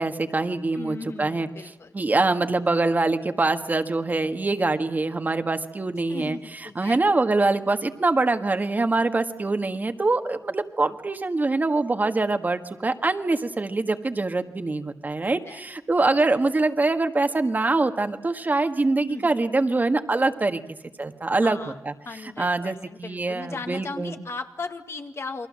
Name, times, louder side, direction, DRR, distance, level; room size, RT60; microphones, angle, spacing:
voice 1, 0.0-20.6 21.0-21.6 21.8-21.9 22.2-24.2, right 3 dB, 30° right, 7 dB, 1.6 m, -24 dB
voice 2, 0.8-1.9 6.1-7.0 15.5-15.6 19.1-19.3 21.4-21.8 22.1-25.5, left 4 dB, 50° left, 6 dB, 2.0 m, -37 dB
29.0 x 23.0 x 7.6 m, 0.91 s
wide cardioid pair, 145°, 6 cm